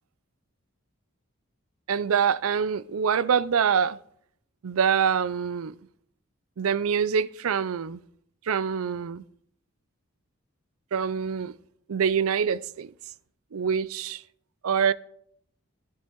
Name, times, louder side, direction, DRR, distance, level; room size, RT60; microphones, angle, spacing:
voice 1, 1.9-4.0 4.6-5.7 6.6-8.0 8.5-9.2 10.9-11.5 11.9-12.9 13.5-14.2 14.6-14.9, right 7 dB, 85° right, 0.5 m, -25 dB
11.5 x 11.5 x 4.6 m
head